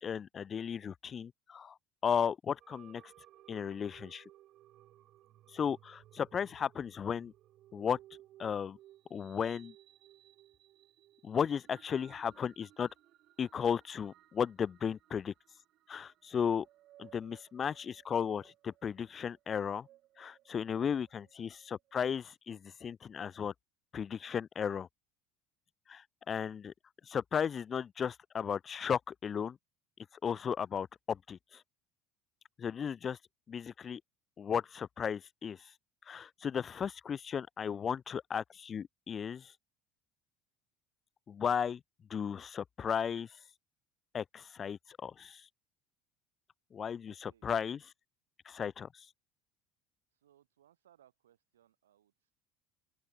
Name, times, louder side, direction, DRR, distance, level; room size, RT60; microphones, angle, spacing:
voice 1, 0.0-1.7 2.0-3.0 3.5-4.2 5.5-7.3 7.7-8.0 8.4-8.8 9.1-9.7 11.2-12.9 13.4-15.3 15.9-16.7 17.0-19.9 20.2-23.5 23.9-24.9 25.9-26.0 26.3-26.7 27.1-29.6 30.2-31.4 32.6-33.2 33.5-34.0 34.4-35.6 36.1-39.5 41.3-41.8 42.1-43.3 44.1-45.4 46.7-47.8 48.5-48.9, left 7 dB, 35° left, 0.5 m, -35 dB
sound 1, 2.6-22.1, right 14 dB, 55° right, 4.5 m, -61 dB
voice 2, 47.1-47.8 50.1-52.3, right 11 dB, 85° right, 7.5 m, -68 dB
open air
hypercardioid pair, 65°, 0 cm